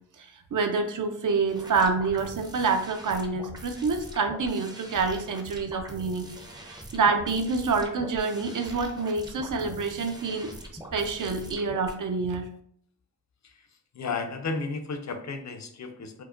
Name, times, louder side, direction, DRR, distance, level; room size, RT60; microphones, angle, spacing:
voice 1, 0.2-6.3 6.5-10.5 10.9-12.5, right 4 dB, 65° right, 5 dB, 0.6 m, -27 dB
sound 1, 1.5-11.9, right 1 dB, 10° right, 0.5 m, -43 dB
voice 2, 13.9-16.2, left 4 dB, 55° left, 6 dB, 0.6 m, -33 dB
4.6 x 2.1 x 2.5 m, 0.64 s
wide cardioid pair, 90°, 34 cm